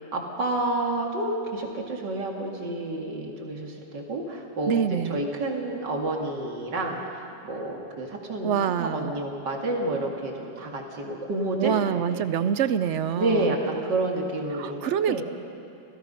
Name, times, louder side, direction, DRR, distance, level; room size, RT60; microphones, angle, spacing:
voice 1, 0.1-7.0 7.5-12.2 13.2-14.8 15.1-15.2, right 2 dB, 85° right, 0 dB, 2.9 m, -29 dB
voice 2, 4.7-5.2 8.4-9.1 11.6-13.5 14.5-15.2, right 8 dB, 65° right, 12 dB, 0.7 m, -26 dB
26.5 x 18.0 x 5.6 m, 2.7 s
omnidirectional pair, 1.8 m